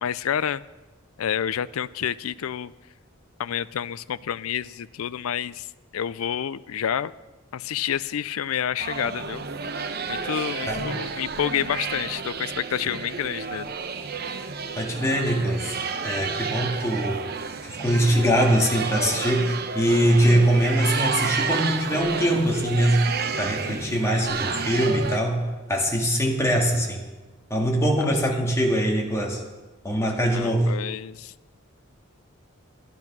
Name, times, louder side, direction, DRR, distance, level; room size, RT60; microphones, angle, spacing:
voice 1, 0.0-0.6 1.2-2.7 3.4-5.7 5.9-7.1 7.5-9.4 10.1-13.7 30.3-31.3, left 9 dB, 85° left, 19 dB, 0.4 m, -29 dB
sound 1, 8.8-25.2, right 5 dB, 45° right, 0.8 m, -30 dB
voice 2, 14.8-15.7 16.0-17.2 17.6-27.0 27.5-29.4 29.8-30.7, equal, 15° left, 0 dB, 1.9 m, -22 dB
12.0 x 11.0 x 6.0 m, 1.2 s
head